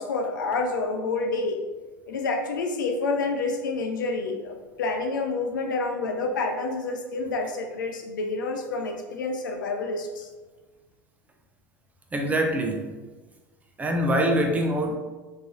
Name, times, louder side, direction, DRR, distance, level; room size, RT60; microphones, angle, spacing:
voice 1, 0.0-1.6 2.1-10.3, left 3 dB, 75° left, 4 dB, 0.4 m, -28 dB
voice 2, 12.1-12.9 13.8-15.0, right 1 dB, 15° right, 2 dB, 0.4 m, -24 dB
3.0 x 2.5 x 2.4 m, 1.3 s
figure-of-eight pair, 80°, 10 cm